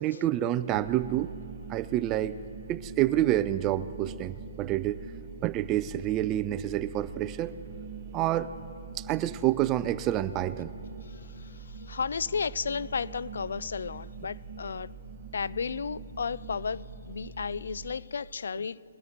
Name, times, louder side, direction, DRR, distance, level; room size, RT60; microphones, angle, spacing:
voice 1, 0.0-1.3 1.7-2.4 2.7-5.1 5.4-7.5 8.1-8.5 8.9-10.7, right 13 dB, 20° right, 13 dB, 0.3 m, -28 dB
sound 1, 0.7-18.0, right 4 dB, 40° right, 1.1 m, -44 dB
voice 2, 11.1-14.9 15.3-18.8, left 5 dB, 70° left, 20 dB, 0.3 m, -33 dB
21.5 x 8.8 x 4.4 m, 2.6 s
hypercardioid pair, 155°, 0 cm